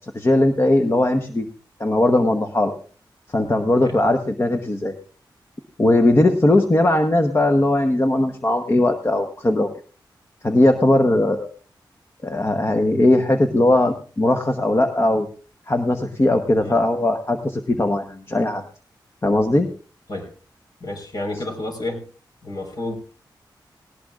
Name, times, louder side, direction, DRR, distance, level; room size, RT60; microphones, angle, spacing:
voice 1, 0.1-1.5 1.8-2.7 3.3-4.9 5.8-9.7 10.4-11.5 12.2-15.3 15.7-18.6 19.2-19.7, left 1 dB, 30° left, 6 dB, 1.0 m, -19 dB
voice 2, 20.8-22.0 22.4-23.0, left 2 dB, 55° left, 3 dB, 4.5 m, -30 dB
18.5 x 18.0 x 2.5 m, 0.39 s
wide cardioid pair, 95°, 8 cm